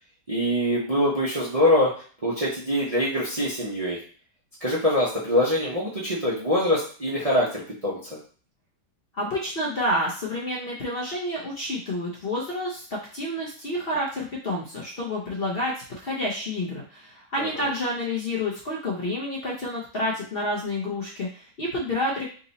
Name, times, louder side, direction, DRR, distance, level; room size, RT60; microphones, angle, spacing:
voice 1, 0.3-1.9 2.2-4.0 4.6-8.0 17.4-17.5, left 1 dB, 30° right, -6 dB, 0.8 m, -24 dB
voice 2, 9.1-22.3, left 1 dB, 45° left, -3 dB, 0.9 m, -29 dB
3.9 x 2.7 x 4.0 m, 0.42 s
omnidirectional pair, 1.7 m